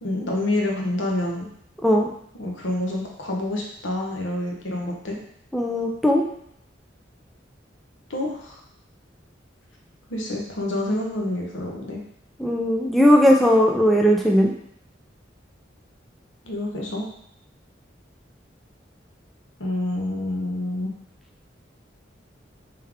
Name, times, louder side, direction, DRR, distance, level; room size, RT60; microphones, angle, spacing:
voice 1, 0.0-1.5 2.3-5.2 8.1-8.6 10.1-12.0 16.4-17.1 19.6-20.9, left 1 dB, 85° left, -1 dB, 0.9 m, -27 dB
voice 2, 5.5-6.2 12.4-14.5, equal, ahead, 0 dB, 0.3 m, -18 dB
3.4 x 3.3 x 3.5 m, 0.71 s
head